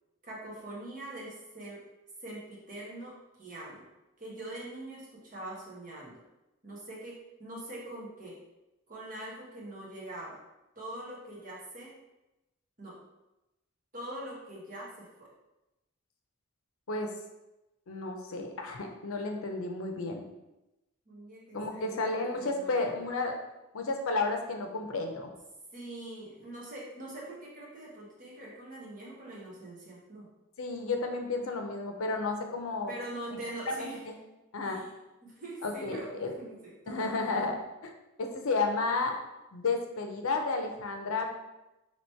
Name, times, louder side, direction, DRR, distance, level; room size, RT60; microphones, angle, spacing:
voice 1, 0.2-1.8 2.2-3.8 4.2-6.2 6.6-8.4 8.9-10.4 10.7-11.9 12.8-13.0 13.9-15.3 21.1-23.1 25.7-30.3 32.9-34.0 34.6-34.9 35.2-36.1 36.4-37.1, right 1 dB, 40° right, -5 dB, 1.0 m, -43 dB
voice 2, 17.9-20.2 21.5-23.4 23.7-25.3 30.6-32.9 33.7-33.8 34.1-34.2 34.5-34.8 35.6-36.3 36.9-37.6 37.8-37.9 38.2-39.1 39.5-41.3, left 3 dB, 75° left, 4 dB, 0.6 m, -32 dB
3.0 x 2.9 x 4.4 m, 0.98 s
head